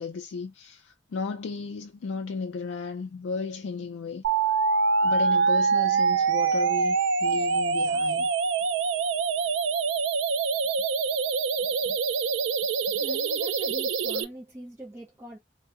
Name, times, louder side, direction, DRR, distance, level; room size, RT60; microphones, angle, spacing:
voice 1, 0.0-4.2 5.0-8.3, left 4 dB, 80° left, 0.4 m, -34 dB
sound 1, 4.2-14.2, right 5 dB, 85° right, 0.4 m, -25 dB
voice 2, 12.9-15.4, right 1 dB, 15° right, 0.5 m, -43 dB
2.6 x 2.1 x 3.5 m
head